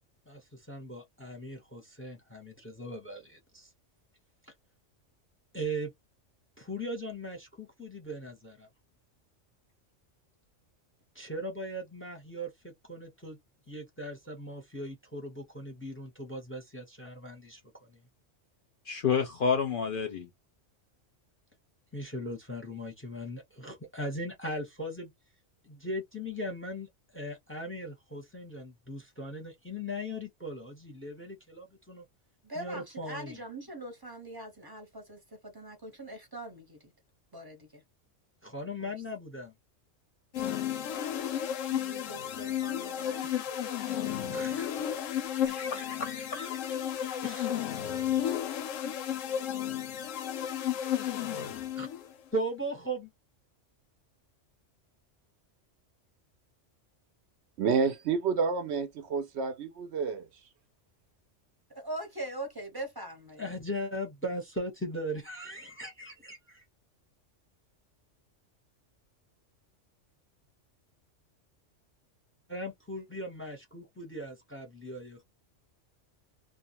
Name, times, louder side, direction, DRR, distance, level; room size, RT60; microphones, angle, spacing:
voice 1, 0.3-3.7 5.5-5.9 6.6-8.7 11.1-13.4 13.7-17.6 17.9-18.0 21.9-25.1 25.6-32.0 32.6-33.4 38.4-39.5 43.2-44.9 45.2-45.5 47.2-47.5 51.8-51.9 52.3-53.0 63.4-66.6 72.5-75.2, equal, 10° left, 0.7 m, -39 dB
voice 2, 18.9-20.3 45.5-47.2, left 6 dB, 55° left, 0.7 m, -31 dB
voice 3, 32.4-36.9 37.3-37.8 38.8-38.9 41.6-43.3 61.7-63.5, right 1 dB, 20° right, 0.8 m, -42 dB
sound 1, 40.3-52.1, left 10 dB, 90° left, 1.0 m, -33 dB
voice 4, 57.6-60.3, right 5 dB, 70° right, 0.8 m, -29 dB
2.4 x 2.2 x 2.8 m
omnidirectional pair, 1.3 m